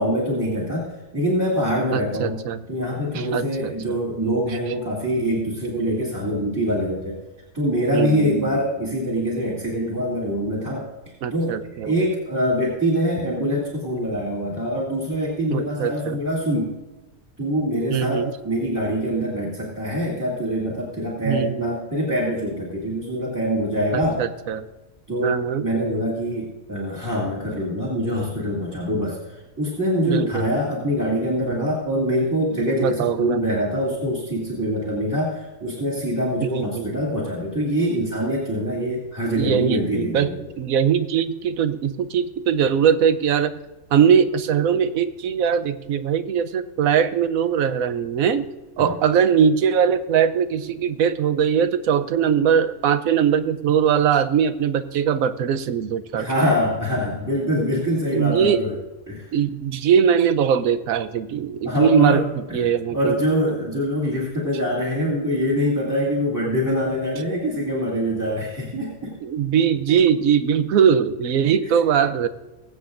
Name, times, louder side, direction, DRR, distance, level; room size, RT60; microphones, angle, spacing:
voice 1, 0.0-2.4 2.7-7.2 7.5-16.7 17.4-24.2 25.1-40.3 48.8-48.9 56.1-58.7 59.1-59.3 61.6-69.1, equal, 10° right, -5 dB, 2.5 m, -24 dB
voice 2, 1.9-2.6 3.1-3.7 7.9-8.6 11.2-11.9 15.5-16.2 17.9-18.3 21.2-21.7 24.2-24.7 25.2-25.7 30.0-30.5 32.8-33.4 36.4-37.0 39.3-40.3 40.6-43.5 43.9-48.5 48.8-56.5 58.1-58.6 59.3-63.2 69.2-72.3, right 7 dB, 75° right, 12 dB, 1.1 m, -21 dB
22.5 x 7.8 x 2.6 m, 1.1 s
omnidirectional pair, 1.5 m